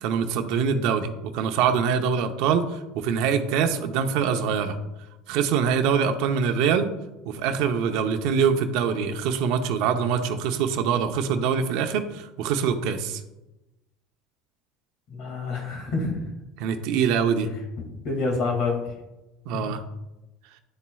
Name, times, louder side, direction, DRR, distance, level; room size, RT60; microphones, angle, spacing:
voice 1, 0.0-4.8 5.3-6.9 7.3-13.2 16.6-17.5 19.5-19.8, right 7 dB, 70° right, 7 dB, 0.7 m, -24 dB
voice 2, 15.1-16.3 18.0-18.9 19.5-19.6, left 3 dB, 60° left, 2 dB, 2.1 m, -27 dB
10.5 x 4.2 x 2.3 m, 0.99 s
supercardioid pair, 105°, 0 cm